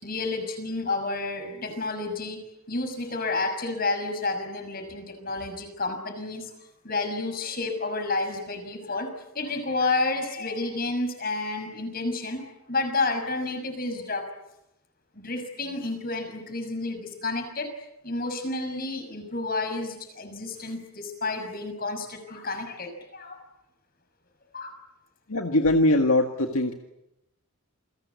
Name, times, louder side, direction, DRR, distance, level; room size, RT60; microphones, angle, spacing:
voice 1, 0.0-2.4 2.7-6.5 6.8-14.3 15.1-17.7 18.0-23.4 24.5-24.7, left 3 dB, 40° left, 7 dB, 6.2 m, -30 dB
voice 2, 25.3-26.7, left 1 dB, 75° left, 4 dB, 1.9 m, -21 dB
29.0 x 22.0 x 8.4 m, 0.88 s
head